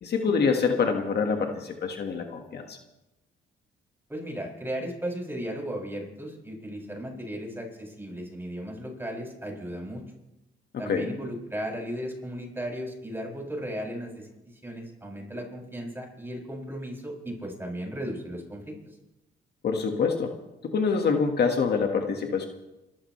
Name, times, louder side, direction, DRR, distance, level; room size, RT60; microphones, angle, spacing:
voice 1, 0.0-2.8 10.9-11.1 19.6-20.3 20.6-22.5, left 5 dB, 55° left, 3 dB, 1.8 m, -26 dB
voice 2, 4.1-10.0 10.8-14.3 14.6-18.9, equal, 10° right, -2 dB, 7.0 m, -36 dB
28.0 x 14.0 x 3.3 m, 0.97 s
cardioid pair, 90°, 20 cm